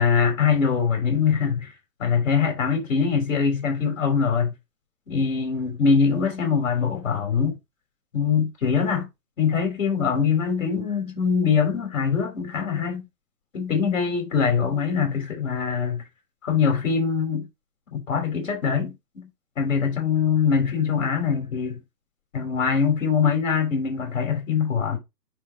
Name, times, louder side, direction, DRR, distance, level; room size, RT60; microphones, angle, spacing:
voice 1, 0.0-1.7 2.0-4.5 5.1-7.5 8.1-9.1 9.4-13.0 13.5-16.0 16.4-17.5 17.9-19.3 19.6-21.8 22.3-25.0, left 6 dB, 50° left, 5.0 m, -23 dB
10.0 x 3.7 x 3.8 m
figure-of-eight pair, 135°, 49 cm